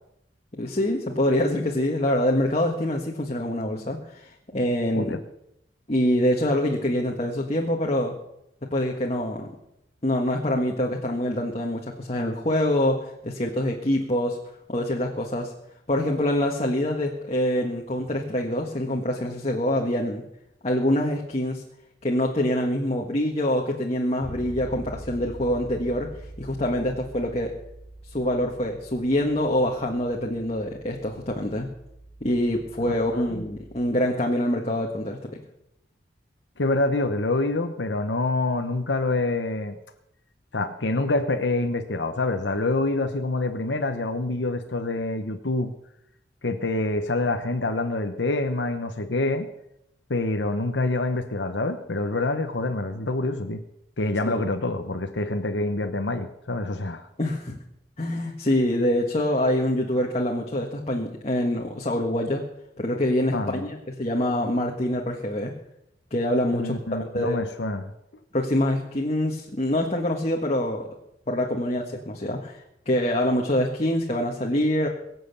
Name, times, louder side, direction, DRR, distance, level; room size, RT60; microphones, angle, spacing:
voice 1, 0.6-5.1 5.9-8.2 8.7-9.5 10.0-14.4 14.7-15.5 15.9-20.2 20.6-21.6 22.0-26.1 26.4-27.5 28.1-31.7 32.2-35.3 54.3-54.4 57.2-57.6 58.0-62.4 62.8-65.5 66.1-67.4 68.3-70.9 71.3-72.6 72.9-74.9, left 1 dB, 35° left, 0 dB, 1.6 m, -25 dB
Bass guitar, 24.2-34.1, right 1 dB, 20° right, 2.8 m, -44 dB
voice 2, 33.1-33.5 36.6-39.8 40.5-45.7 46.4-49.5 50.1-53.6 54.0-57.1 63.3-63.7 66.5-67.8, left 2 dB, 85° left, 7 dB, 1.0 m, -26 dB
23.0 x 7.8 x 6.9 m, 0.82 s
head